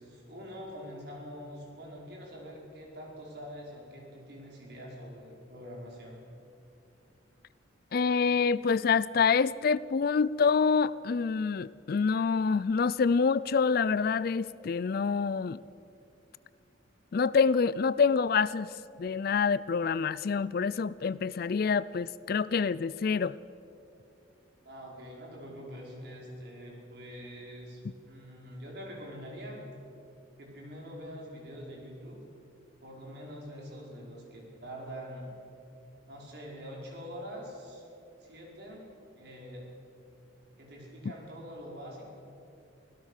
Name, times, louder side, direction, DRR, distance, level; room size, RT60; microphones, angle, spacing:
voice 1, 0.0-6.2 24.6-29.7 30.4-32.2 32.8-35.3 36.1-37.8 38.2-38.9 39.1-39.7 40.6-42.1, equal, 55° right, 5.3 m, -44 dB
voice 2, 7.9-15.6 17.1-18.7 19.0-23.4, left 5 dB, 50° left, 0.4 m, -26 dB
25.0 x 16.5 x 6.6 m
head